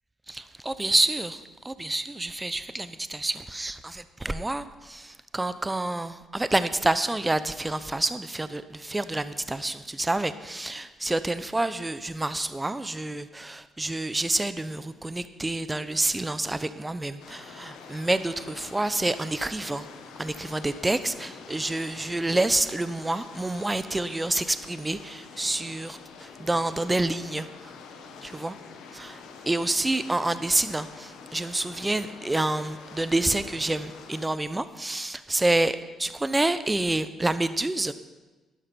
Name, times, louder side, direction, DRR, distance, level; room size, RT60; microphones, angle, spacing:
voice 1, 0.3-19.9 20.2-27.5 28.2-28.6 28.9-29.2 29.5-37.9, right 2 dB, 15° right, 13 dB, 0.8 m, -28 dB
sound 1, 17.2-34.3, left 5 dB, 75° left, 1.4 m, -46 dB
12.0 x 11.5 x 5.8 m, 1.2 s
hypercardioid pair, 50°, 0 cm